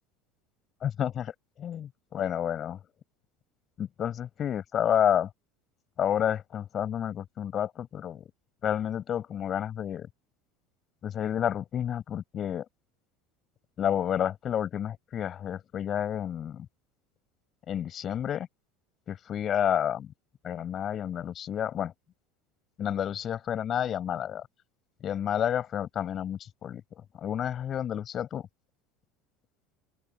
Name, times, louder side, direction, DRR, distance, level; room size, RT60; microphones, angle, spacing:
voice 1, 0.8-2.8 3.8-5.3 6.0-8.2 8.6-10.1 11.0-12.7 13.8-16.7 17.7-18.5 19.1-20.1 20.4-21.9 22.8-24.5 25.0-26.8 27.1-28.5, left 9 dB, 35° left, 6.0 m, -30 dB
open air
supercardioid pair, 125°, 0 cm